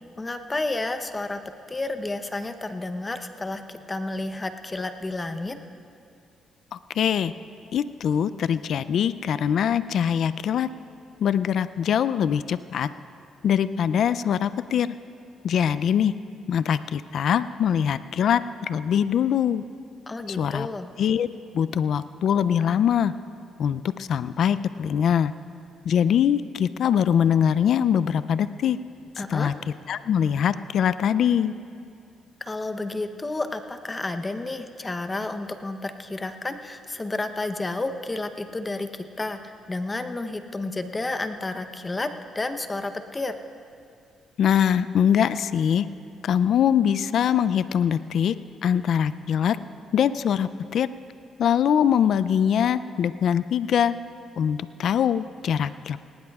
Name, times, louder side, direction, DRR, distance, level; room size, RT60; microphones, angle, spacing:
voice 1, 0.2-1.4 1.7-5.6 20.1-20.9 29.2-29.5 32.4-39.4 39.7-42.1 42.3-43.3, left 2 dB, 20° left, 8 dB, 0.8 m, -31 dB
voice 2, 6.7-7.3 7.7-10.7 11.2-12.9 13.4-14.9 15.4-16.1 16.5-18.4 18.7-19.6 20.3-20.7 21.0-21.3 21.5-23.1 23.6-25.3 25.9-28.8 29.2-29.5 29.9-31.5 44.4-45.9 46.2-48.3 48.6-49.6 49.9-50.9 51.4-53.9 54.4-56.0, left 8 dB, 65° left, 14 dB, 0.3 m, -23 dB
19.0 x 18.5 x 2.4 m, 2.4 s
cardioid pair, 90°, 0 cm